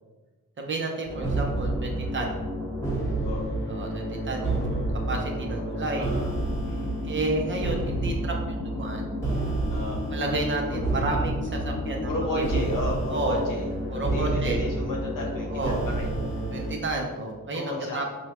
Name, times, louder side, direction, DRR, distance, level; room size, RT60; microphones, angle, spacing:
voice 1, 0.6-2.4 3.7-6.1 7.0-9.1 10.1-12.6 13.1-13.4 13.9-14.6 15.5-15.8 16.5-18.0, right 2 dB, 35° right, 1 dB, 0.5 m, -31 dB
sound 1, 1.1-16.7, right 1 dB, 10° left, 1.1 m, -29 dB
voice 2, 5.9-6.3 6.6-7.0 9.7-10.1 10.7-10.8 12.0-16.1 17.5-18.0, left 1 dB, 65° left, -1 dB, 1.0 m, -33 dB
5.3 x 2.1 x 2.9 m, 1.3 s
wide cardioid pair, 135°, 35 cm